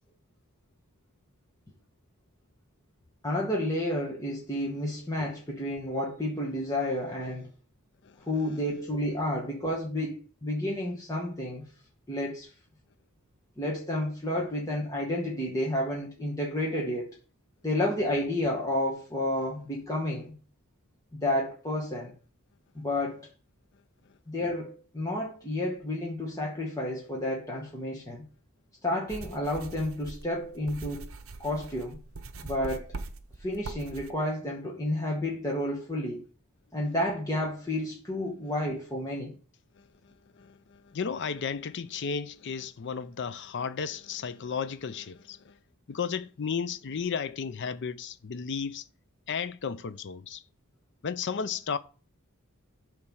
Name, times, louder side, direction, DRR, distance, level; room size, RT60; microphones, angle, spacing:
voice 1, 3.2-7.5 8.2-11.7 12.1-12.5 13.6-17.1 17.6-20.3 21.2-22.1 22.7-23.3 24.3-28.2 28.8-31.0 31.4-32.0 32.4-32.9 33.4-36.2 36.7-39.3, left 1 dB, 15° left, 1.3 m, -31 dB
sound 1, 29.1-34.1, right 3 dB, 65° right, 0.8 m, -42 dB
voice 2, 40.4-45.6 45.9-48.8 49.3-50.4 51.0-51.8, left 6 dB, 55° left, 0.5 m, -34 dB
8.6 x 3.3 x 6.2 m
head